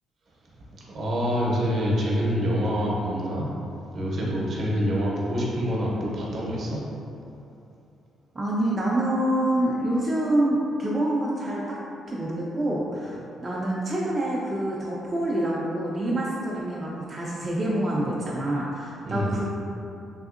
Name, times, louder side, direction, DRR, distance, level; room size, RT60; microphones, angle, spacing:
voice 1, 0.9-3.5 3.9-6.8 19.1-19.4, equal, 55° right, -4 dB, 0.7 m, -26 dB
voice 2, 8.3-11.8 12.1-19.5, right 1 dB, 25° right, -6 dB, 0.3 m, -26 dB
3.5 x 2.7 x 2.4 m, 2.7 s
cardioid pair, 130°, 0 cm